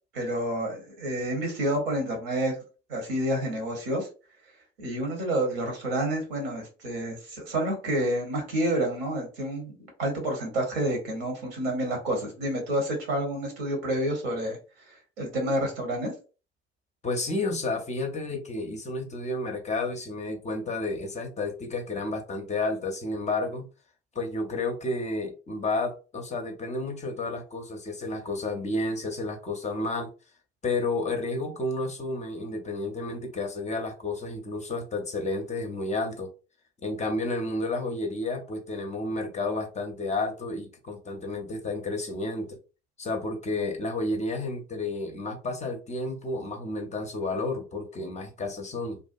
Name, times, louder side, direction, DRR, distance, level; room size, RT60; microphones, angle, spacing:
voice 1, 0.1-2.5 2.9-4.1 4.8-14.6 14.9-16.1, right 1 dB, 70° right, 1.0 m, -29 dB
voice 2, 17.0-23.6 24.1-30.1 30.6-36.3 36.8-42.6 43.0-49.0, left 2 dB, 25° left, 0.5 m, -31 dB
2.5 x 2.2 x 2.4 m
figure-of-eight pair, 55°, 31 cm